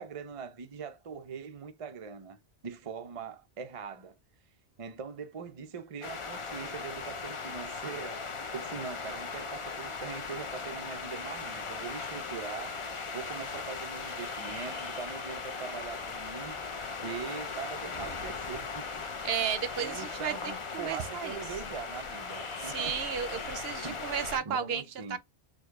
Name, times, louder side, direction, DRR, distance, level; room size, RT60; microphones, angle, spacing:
voice 1, 0.0-4.2 4.8-8.2 8.5-12.8 13.1-16.6 17.0-18.9 19.2-19.4 19.8-22.9 23.8-25.2, right 6 dB, 40° right, 0.5 m, -42 dB
sound 1, 6.0-24.4, left 4 dB, 35° left, 0.5 m, -38 dB
sound 2, 11.0-24.4, left 3 dB, 75° left, 1.8 m, -51 dB
voice 2, 19.2-21.4 22.6-25.2, right 8 dB, 65° right, 0.9 m, -34 dB
4.8 x 2.2 x 4.7 m
omnidirectional pair, 1.2 m